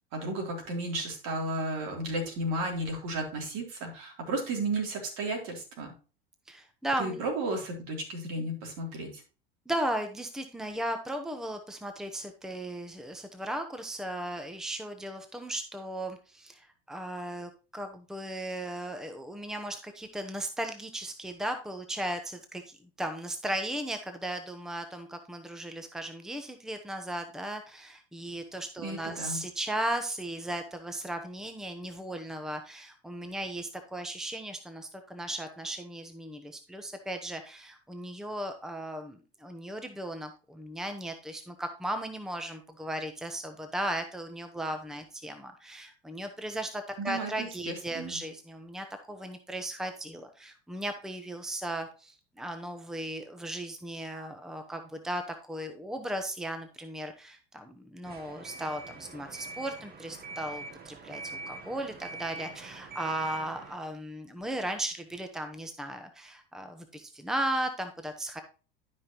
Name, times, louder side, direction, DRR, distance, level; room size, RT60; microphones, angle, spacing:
voice 1, 0.1-5.9 7.0-9.2 28.8-29.4 47.0-48.2, right 2 dB, 60° right, 2 dB, 3.4 m, -33 dB
voice 2, 6.5-7.2 9.7-68.4, right 1 dB, ahead, 7 dB, 1.0 m, -36 dB
sound 1, 58.0-63.8, right 3 dB, 30° right, 1.2 m, -44 dB
12.0 x 5.3 x 3.0 m, 0.35 s
hypercardioid pair, 80°, 30 cm